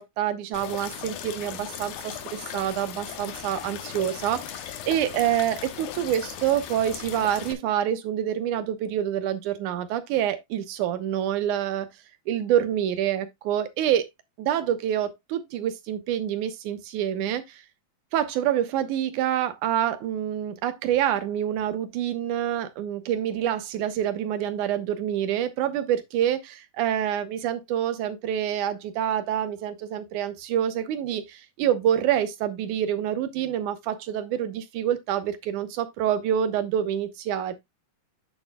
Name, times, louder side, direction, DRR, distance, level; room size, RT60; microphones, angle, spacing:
voice 1, 0.0-11.9 12.3-14.1 14.4-17.6 18.1-37.5, right 10 dB, 70° right, 2.2 m, -27 dB
sound 1, 0.5-7.5, left 10 dB, 85° left, 2.9 m, -38 dB
8.4 x 7.8 x 2.3 m
omnidirectional pair, 4.2 m